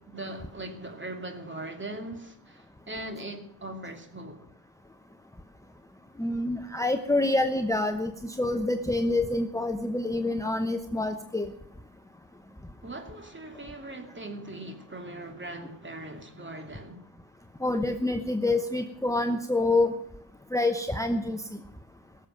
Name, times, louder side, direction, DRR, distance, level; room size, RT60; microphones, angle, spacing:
voice 1, 0.0-4.4 12.8-17.0, right 1 dB, 25° right, 2.6 m, -40 dB
voice 2, 6.2-11.5 17.6-19.9 20.5-21.6, left 2 dB, 5° left, 0.9 m, -27 dB
17.5 x 7.4 x 7.6 m
cardioid pair, 80°, 43 cm